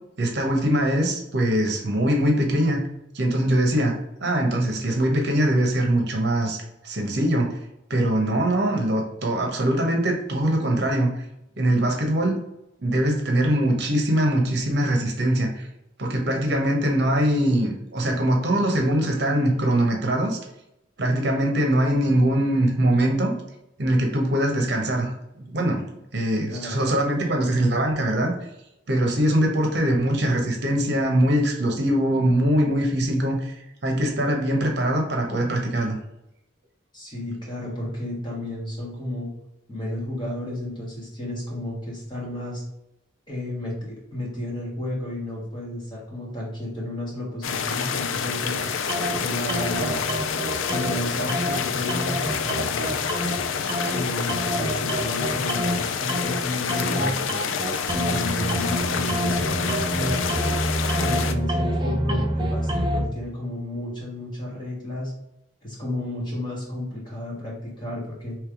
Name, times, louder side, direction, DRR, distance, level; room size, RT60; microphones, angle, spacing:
voice 1, 0.2-2.8 3.1-7.6 7.9-11.2 11.6-12.4 12.8-15.7 16.0-20.4 21.0-23.3 23.8-25.8 26.1-28.3 28.9-33.5 33.8-36.0, right 1 dB, 55° right, 2 dB, 0.9 m, -22 dB
voice 2, 26.5-26.9 36.9-39.3 39.7-42.6 43.3-48.6 49.1-50.1 50.7-52.9 53.9-57.2 57.9-60.2 61.0-65.1 65.6-68.4, left 1 dB, 25° left, -5 dB, 1.6 m, -32 dB
sound 1, 47.4-61.3, left 6 dB, 80° left, 0.4 m, -28 dB
sound 2, 48.9-49.2 49.5-51.0 51.3-51.6 51.9-53.4 53.7-54.0 54.3-55.8 56.1-56.4 56.7-63.0, right 1 dB, 25° right, 0.6 m, -27 dB
3.4 x 3.2 x 4.7 m, 0.86 s
head